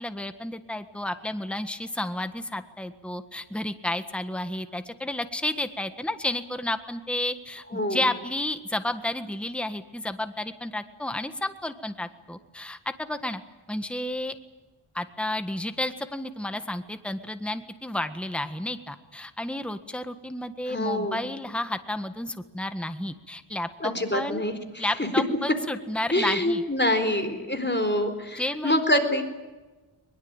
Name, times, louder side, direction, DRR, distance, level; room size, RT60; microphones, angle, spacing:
voice 1, 0.0-13.4 13.7-14.4 14.9-24.4 24.8-26.6 28.4-28.8, left 1 dB, ahead, 9 dB, 1.5 m, -31 dB
voice 2, 7.7-8.1 20.7-21.2 23.8-24.9 26.1-29.2, left 1 dB, 20° left, 8 dB, 4.0 m, -26 dB
22.0 x 22.0 x 9.0 m, 1.2 s
wide cardioid pair, 55°, 49 cm